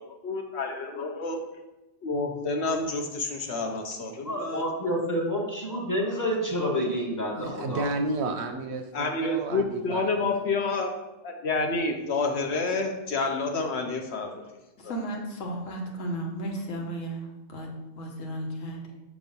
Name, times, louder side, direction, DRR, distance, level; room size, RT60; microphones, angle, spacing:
voice 1, 0.0-1.4 2.0-4.7 6.0-6.1 8.9-10.9 11.2-14.4 14.8-14.9, left 3 dB, 65° left, 3 dB, 0.9 m, -29 dB
voice 2, 4.2-7.9, equal, 15° left, -3 dB, 1.1 m, -28 dB
voice 3, 7.3-10.1, right 2 dB, 65° right, 5 dB, 0.8 m, -32 dB
voice 4, 14.8-17.7 18.0-18.8, right 1 dB, 80° left, 1 dB, 1.4 m, -34 dB
6.2 x 3.1 x 5.3 m, 1.0 s
omnidirectional pair, 1.3 m